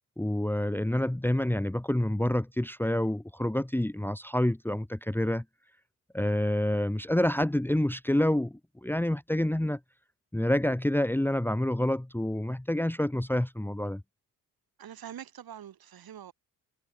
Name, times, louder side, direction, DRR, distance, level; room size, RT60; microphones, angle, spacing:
voice 1, 0.2-5.4 6.1-9.8 10.3-14.0, left 1 dB, 5° left, 1.8 m, -28 dB
voice 2, 14.8-16.3, right 10 dB, 50° right, 5.4 m, -44 dB
figure-of-eight pair, 50°, 47 cm